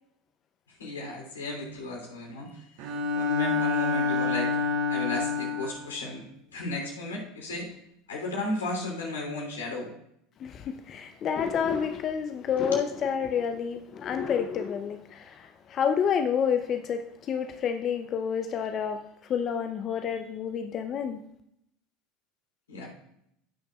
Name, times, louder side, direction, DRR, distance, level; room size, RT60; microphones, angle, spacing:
voice 1, 0.8-2.5 2.8-4.5 4.9-6.3 6.5-7.7 8.1-9.9 12.6-12.8 22.7-22.9, left 2 dB, 85° left, 3.1 m, -34 dB
Bowed string instrument, 2.8-5.9, left 4 dB, 60° right, 0.9 m, -27 dB
voice 2, 10.4-19.0 19.3-21.2, left 7 dB, 40° left, 0.6 m, -29 dB
16.0 x 6.6 x 2.4 m
hypercardioid pair, 80°, 0 cm